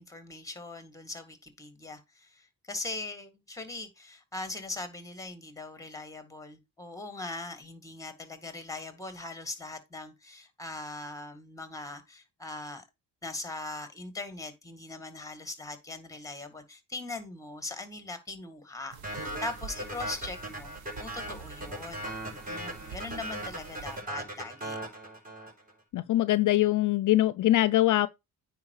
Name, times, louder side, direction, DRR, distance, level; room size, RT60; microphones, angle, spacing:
voice 1, 0.0-12.8 13.2-20.7 21.0-24.8, left 2 dB, 10° left, 2.0 m, -41 dB
sound 1, 18.9-24.0, right 6 dB, 70° right, 1.5 m, -47 dB
sound 2, 19.0-25.7, right 1 dB, 20° right, 5.0 m, -38 dB
voice 2, 25.9-28.1, left 15 dB, 55° left, 0.5 m, -23 dB
9.5 x 4.6 x 4.8 m
cardioid pair, 120°, 37 cm